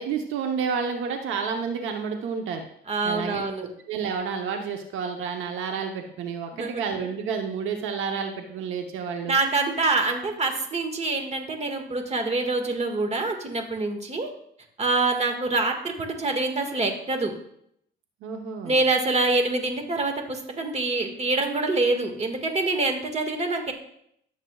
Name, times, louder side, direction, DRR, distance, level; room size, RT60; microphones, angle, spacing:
voice 1, 0.0-2.7 3.0-3.4 3.9-9.4 18.2-18.8, right 6 dB, 90° right, 4 dB, 0.9 m, -30 dB
voice 2, 2.9-3.7 6.5-6.8 9.3-14.3 14.8-17.3 18.6-23.7, right 3 dB, 35° right, 4 dB, 1.7 m, -25 dB
14.5 x 7.4 x 2.4 m, 0.71 s
cardioid pair, 90°, 20 cm